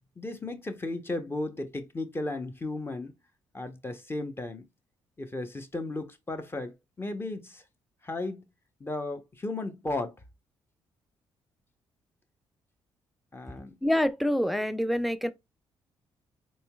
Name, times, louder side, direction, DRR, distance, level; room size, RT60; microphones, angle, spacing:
voice 1, 0.2-3.1 3.5-4.7 5.2-7.6 8.0-8.4 8.8-10.1 13.3-13.7, left 2 dB, 20° left, 0.9 m, -35 dB
voice 2, 13.8-15.3, left 1 dB, ahead, 0.5 m, -26 dB
4.3 x 3.1 x 2.3 m
supercardioid pair, 55°, 10 cm